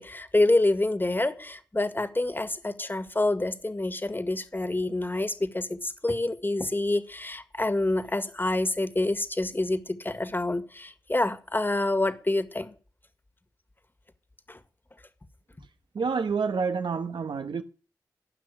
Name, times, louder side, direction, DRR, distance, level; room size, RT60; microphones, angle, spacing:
voice 1, 0.0-12.7 14.5-14.6, left 2 dB, 25° left, 1.9 m, -27 dB
voice 2, 15.9-17.6, right 5 dB, 80° right, 1.3 m, -28 dB
16.0 x 5.9 x 9.8 m
cardioid pair, 45°, 8 cm